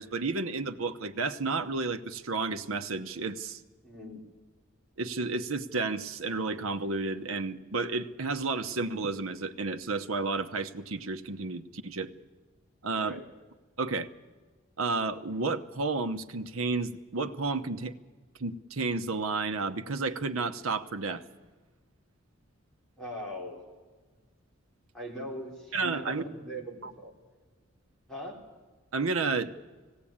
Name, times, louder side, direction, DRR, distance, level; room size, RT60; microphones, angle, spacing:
voice 1, 0.0-3.6 5.0-12.1 12.8-13.2 13.8-14.1 14.8-17.9 18.4-21.2 25.7-26.2 26.8-26.9 28.9-29.5, right 3 dB, 90° right, 9 dB, 0.9 m, -31 dB
voice 2, 3.8-4.2 13.0-13.2 23.0-23.6 24.9-27.2 28.1-28.4, equal, ahead, -4 dB, 3.6 m, -40 dB
18.5 x 16.5 x 8.7 m, 1.3 s
head